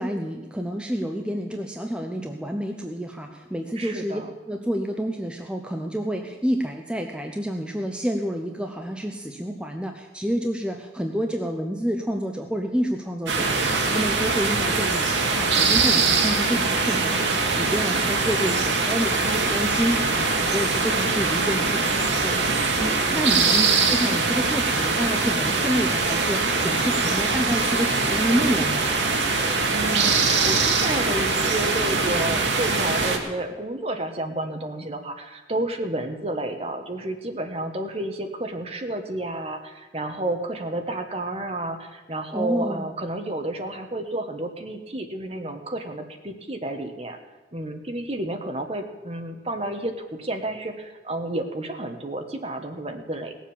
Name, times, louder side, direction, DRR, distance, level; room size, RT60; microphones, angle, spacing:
voice 1, 0.0-4.2 4.5-16.6 16.9-17.0 17.4-19.1 19.5-22.5 22.8-28.9 42.3-42.9, equal, 5° right, 3 dB, 0.6 m, -28 dB
voice 2, 3.7-4.3 16.4-17.2 18.5-19.4 23.6-23.9 29.7-47.2 47.5-53.4, right 1 dB, 35° right, 5 dB, 1.2 m, -31 dB
sound 1, 13.3-33.2, right 4 dB, 85° right, 1.8 m, -22 dB
17.5 x 7.3 x 7.2 m, 1.2 s
head